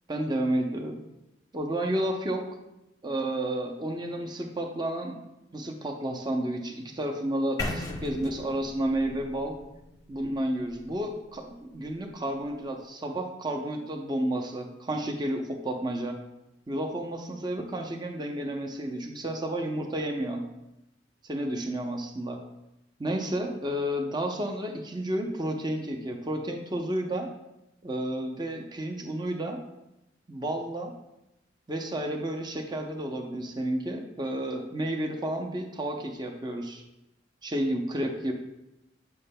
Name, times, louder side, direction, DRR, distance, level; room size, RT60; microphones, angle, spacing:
voice 1, 0.1-1.0 1.5-2.5 3.0-5.2 5.5-9.5 10.1-16.2 16.7-20.4 21.2-22.4 23.0-27.3 27.8-29.6 30.3-30.9 31.7-36.8 37.4-38.3, right 1 dB, 25° right, 3 dB, 0.6 m, -31 dB
sound 1, 7.6-11.6, left 2 dB, 20° left, 0.7 m, -38 dB
8.6 x 7.0 x 2.2 m, 0.91 s
head